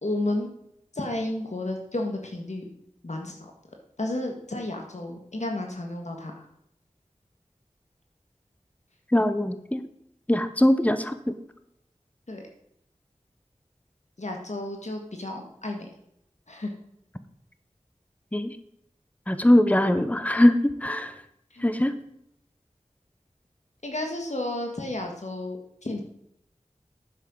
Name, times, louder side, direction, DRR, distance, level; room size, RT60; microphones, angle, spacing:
voice 1, 0.0-0.5 0.9-2.6 3.0-3.5 4.0-6.4 12.3-12.4 14.2-15.9 16.5-16.7 21.5-21.7 23.8-26.0, left 1 dB, 65° left, 2 dB, 1.6 m, -32 dB
voice 2, 9.1-9.8 10.3-11.1 18.3-18.5 19.3-21.1 21.6-21.9, left 1 dB, 10° left, 10 dB, 0.9 m, -21 dB
10.0 x 7.4 x 5.5 m, 0.75 s
wide cardioid pair, 45°, 13 cm